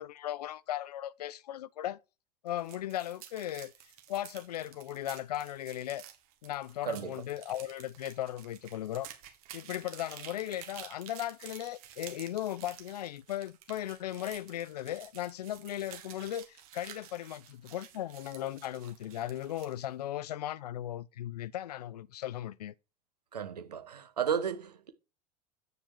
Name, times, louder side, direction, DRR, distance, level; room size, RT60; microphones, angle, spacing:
voice 1, 0.0-2.0 2.4-3.7 4.1-6.0 6.4-9.1 9.5-22.7, left 12 dB, 80° left, 0.5 m, -37 dB
sound 1, 2.5-19.8, right 11 dB, 65° right, 2.1 m, -51 dB
voice 2, 23.3-24.9, right 8 dB, 85° right, 1.2 m, -33 dB
8.2 x 6.7 x 4.6 m
hypercardioid pair, 80°, 20 cm